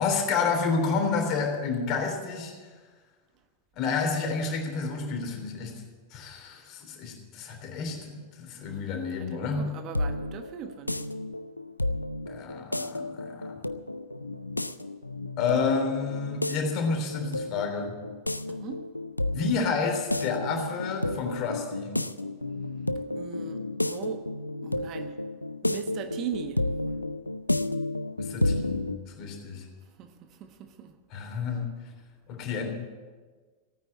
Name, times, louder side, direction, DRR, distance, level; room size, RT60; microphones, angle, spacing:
voice 1, 0.0-2.5 3.8-5.8 6.1-9.7 12.3-13.6 15.4-18.0 19.3-22.0 28.2-29.7 31.1-31.7 32.3-32.7, left 5 dB, 40° left, 3.4 m, -30 dB
voice 2, 9.1-11.1 18.5-18.8 23.1-24.3 24.6-25.2 25.6-26.7 30.0-30.9, right 9 dB, 35° right, 1.3 m, -40 dB
sound 1, 9.5-29.0, left 2 dB, 85° left, 0.5 m, -32 dB
16.5 x 9.3 x 8.2 m
figure-of-eight pair, 90°, 0 cm